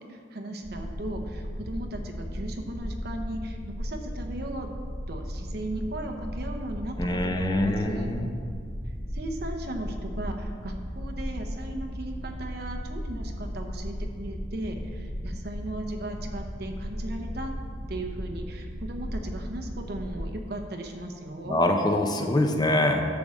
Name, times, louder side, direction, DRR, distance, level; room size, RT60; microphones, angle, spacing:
voice 1, 0.1-4.7 5.1-8.1 9.1-17.5 17.9-21.6, right 1 dB, 60° right, 4 dB, 0.9 m, -36 dB
sound 1, 0.6-20.3, equal, 80° left, 1.4 m, -36 dB
voice 2, 7.0-8.3 21.5-23.0, left 1 dB, 25° left, 4 dB, 0.6 m, -24 dB
10.5 x 3.8 x 7.2 m, 2.2 s
head